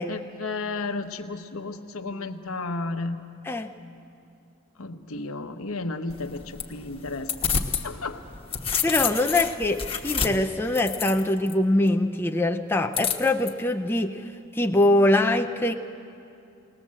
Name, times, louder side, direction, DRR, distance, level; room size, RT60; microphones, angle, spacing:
voice 1, 0.1-3.2 4.8-8.2, left 3 dB, 75° left, 7 dB, 1.0 m, -33 dB
sound 1, 6.1-7.9 8.2-11.5 12.9-13.5, left 7 dB, 25° left, 1.1 m, -29 dB
voice 2, 8.8-15.7, left 1 dB, 10° left, 4 dB, 0.5 m, -23 dB
20.0 x 19.0 x 7.6 m, 2.7 s
head